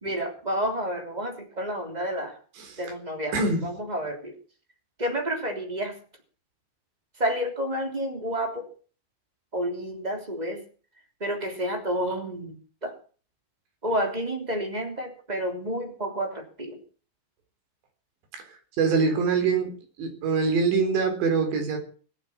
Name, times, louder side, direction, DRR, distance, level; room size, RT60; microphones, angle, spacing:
voice 1, 0.0-2.4 2.8-3.4 3.6-4.3 5.0-6.0 7.2-8.7 9.5-10.6 11.2-12.9 13.8-16.8, equal, 10° right, 3 dB, 2.3 m, -30 dB
voice 2, 3.3-3.7 18.4-18.5 18.8-19.7 20.0-21.8, right 4 dB, 65° right, 5 dB, 6.1 m, -24 dB
22.0 x 8.5 x 7.4 m, 0.41 s
omnidirectional pair, 5.5 m